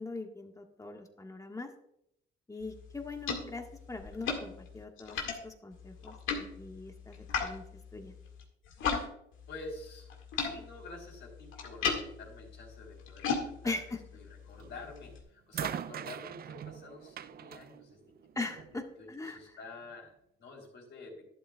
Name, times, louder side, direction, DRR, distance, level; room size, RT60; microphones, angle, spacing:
voice 1, 0.0-1.7 2.5-5.2 5.4-7.6 7.9-8.1 13.6-13.8 18.4-18.8 19.1-19.4, left 3 dB, 15° left, 3 dB, 1.6 m, -41 dB
sound 1, 2.6-9.1 9.3-15.2, left 5 dB, 80° left, 2.1 m, -38 dB
voice 2, 9.5-10.1 10.3-18.0 18.5-20.1 20.4-21.3, left 3 dB, 65° left, 0 dB, 3.8 m, -48 dB
sound 2, 14.6-14.9 15.5-18.8 19.8-19.9, right 9 dB, 50° right, 0.4 m, -42 dB
12.0 x 11.5 x 2.4 m, 0.76 s
cardioid pair, 90°, 20 cm